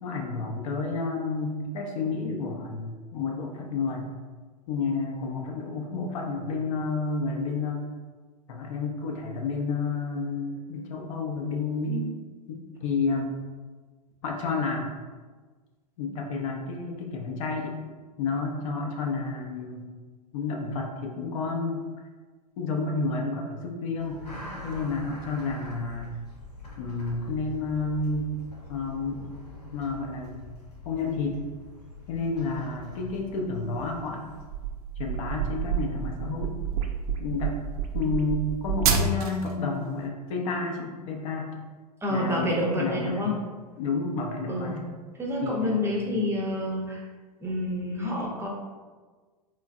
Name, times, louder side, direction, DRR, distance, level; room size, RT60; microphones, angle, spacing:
voice 1, 0.0-4.1 4.7-7.9 8.5-12.1 12.5-13.3 14.2-14.9 16.0-17.8 18.2-19.9 20.3-21.9 22.6-24.3 24.6-26.2 26.8-28.3 28.7-29.2 29.7-30.4 30.8-31.5 32.1-34.3 35.0-36.6 37.2-37.6 37.9-41.5 42.1-43.3 43.8-44.8 45.4-46.0, left 3 dB, 55° left, 1 dB, 0.6 m, -30 dB
sound 1, 24.0-34.4, left 2 dB, 85° left, 0.8 m, -44 dB
sound 2, 34.4-39.5, right 6 dB, 65° right, 0.5 m, -28 dB
voice 2, 42.0-43.3 44.5-44.8 45.2-47.0 47.4-48.5, left 1 dB, 10° right, -1 dB, 0.6 m, -28 dB
3.2 x 3.1 x 2.3 m, 1.4 s
hypercardioid pair, 100°, 20 cm